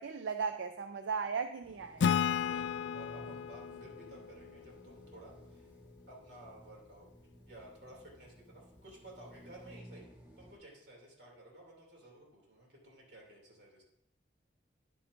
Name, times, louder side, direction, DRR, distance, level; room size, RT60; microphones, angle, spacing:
voice 1, 0.0-2.1, right 5 dB, 90° right, 7 dB, 0.4 m, -37 dB
sound 1, 1.6-10.5, equal, 10° right, 1.8 m, -57 dB
Acoustic guitar / Strum, 2.0-5.5, left 7 dB, 75° left, 0.4 m, -34 dB
voice 2, 2.4-5.7 6.1-7.1 7.4-10.1 10.4-13.8, right 1 dB, 70° right, -1 dB, 2.8 m, -54 dB
10.5 x 8.7 x 2.6 m, 0.78 s
head